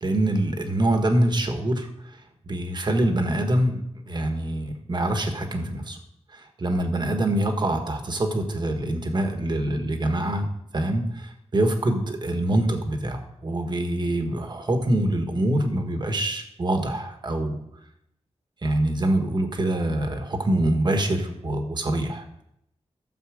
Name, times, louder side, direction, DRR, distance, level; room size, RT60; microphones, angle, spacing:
voice 1, 0.0-1.9 2.5-6.0 6.6-10.5 10.7-17.6 18.6-22.2, right 1 dB, 40° right, 5 dB, 1.4 m, -25 dB
13.0 x 7.2 x 5.0 m, 0.77 s
wide cardioid pair, 150°, 12 cm